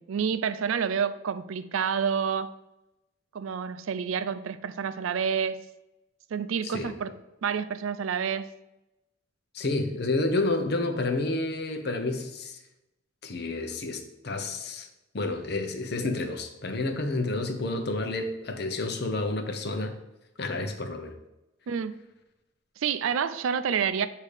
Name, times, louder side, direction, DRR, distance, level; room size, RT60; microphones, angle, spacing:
voice 1, 0.0-2.5 3.3-5.6 6.3-7.1 7.4-8.5 21.7-22.0 22.8-24.1, right 7 dB, 85° right, 12 dB, 0.4 m, -28 dB
voice 2, 9.5-12.6 13.2-14.9 15.1-20.0 20.4-21.2, left 2 dB, 50° left, 6 dB, 0.7 m, -30 dB
8.1 x 2.8 x 4.9 m, 0.94 s
head